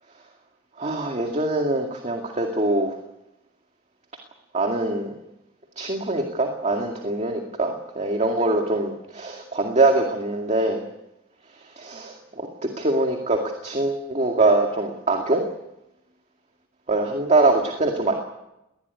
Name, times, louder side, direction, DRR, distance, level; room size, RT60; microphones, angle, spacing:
voice 1, 0.8-3.0 4.5-5.1 5.8-10.8 11.6-15.4 16.9-18.1, right 2 dB, 35° right, 3 dB, 2.2 m, -23 dB
21.0 x 19.5 x 9.6 m, 0.91 s
head